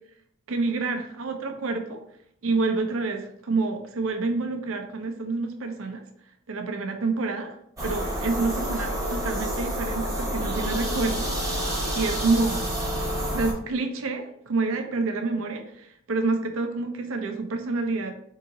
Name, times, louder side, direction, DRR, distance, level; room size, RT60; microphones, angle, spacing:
voice 1, 0.5-2.0 2.4-6.0 6.5-7.6 7.8-11.6 11.9-12.7 13.3-18.1, right 3 dB, 75° right, 5 dB, 0.6 m, -28 dB
sound 1, 7.8-13.5, equal, 15° right, 0.9 m, -28 dB
3.7 x 2.9 x 3.6 m, 0.70 s
head